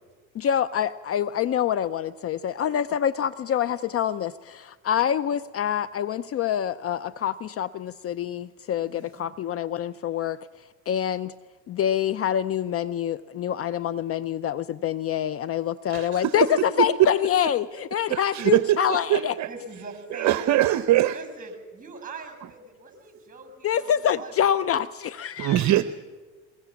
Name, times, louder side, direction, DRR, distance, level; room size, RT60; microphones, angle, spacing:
voice 1, 0.3-10.4 10.9-11.3 11.7-19.3 23.6-25.7, left 9 dB, 40° left, 16 dB, 0.6 m, -26 dB
voice 2, 8.8-9.3 19.5-20.6 21.1-24.5, right 2 dB, 20° right, 8 dB, 5.8 m, -42 dB
voice 3, 15.9-16.3 16.8-16.9 18.1-19.5 20.1-21.2 25.4-25.8, right 14 dB, 50° right, 13 dB, 0.8 m, -22 dB
22.0 x 20.5 x 7.1 m, 1.4 s
supercardioid pair, 90°, 36 cm